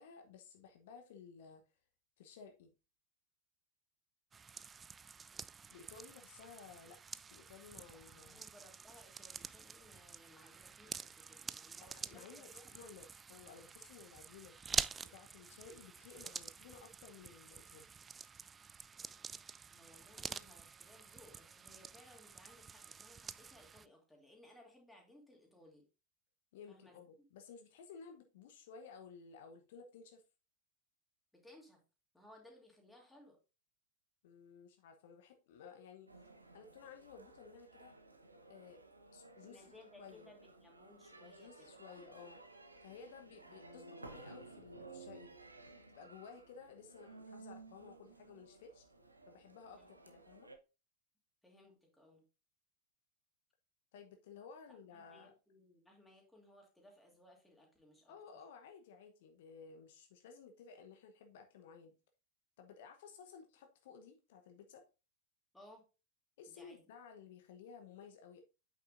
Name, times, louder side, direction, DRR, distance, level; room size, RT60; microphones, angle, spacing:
voice 1, 0.0-1.6 2.2-2.7 5.7-7.0 7.3-8.5 11.8-14.6 15.0-17.9 26.5-30.2 34.2-36.3 36.5-38.0 38.5-38.8 39.1-39.7 40.0-40.3 41.2-42.4 42.8-45.3 45.9-48.9 49.3-50.5 53.9-55.3 58.1-61.9 62.6-64.9 66.4-68.4, left 6 dB, 55° left, 6 dB, 1.0 m, -56 dB
sound 1, 4.3-23.9, right 6 dB, 20° right, 0.3 m, -47 dB
voice 2, 7.9-12.6 19.7-25.8 26.7-27.0 31.3-31.8 32.1-33.4 39.4-42.0 49.8-50.0 51.4-52.2 54.7-58.1 65.5-65.9 66.5-66.9, left 1 dB, 5° left, 0 dB, 2.6 m, -62 dB
sound 2, 36.1-50.6, right 3 dB, 80° right, 1.0 m, -56 dB
8.6 x 6.3 x 2.6 m, 0.30 s
figure-of-eight pair, 90°, 0 cm